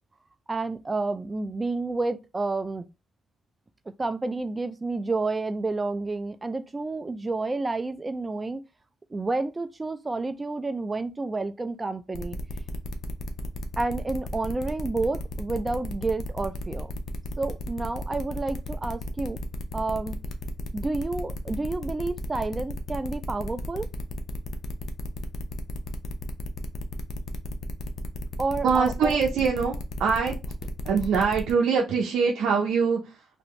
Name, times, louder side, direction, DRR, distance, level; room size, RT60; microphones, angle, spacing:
voice 1, 0.5-2.8 4.0-8.6 9.1-12.4 13.8-16.9 17.4-19.4 19.7-20.2 20.7-23.9 28.4-29.1, right 3 dB, 25° right, 0.4 m, -30 dB
sound 1, 12.1-31.5, left 2 dB, 50° left, 0.6 m, -35 dB
voice 2, 28.6-30.4 30.8-33.3, right 5 dB, 80° right, 0.6 m, -23 dB
2.7 x 2.6 x 3.1 m
cardioid pair, 90°, 0 cm